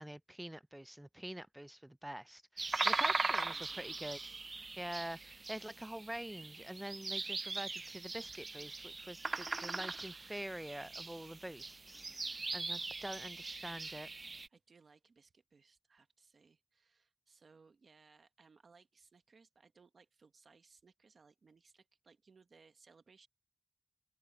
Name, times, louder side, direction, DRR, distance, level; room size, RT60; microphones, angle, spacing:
voice 1, 0.0-4.2 4.8-12.0 12.3-14.1, right 1 dB, 15° right, 0.6 m, -46 dB
sound 1, 2.6-14.5, right 3 dB, 60° right, 0.3 m, -40 dB
voice 2, 2.7-4.2 11.9-12.5 14.5-23.3, right 4 dB, 90° right, 1.2 m, -65 dB
open air
cardioid pair, 50°, 0 cm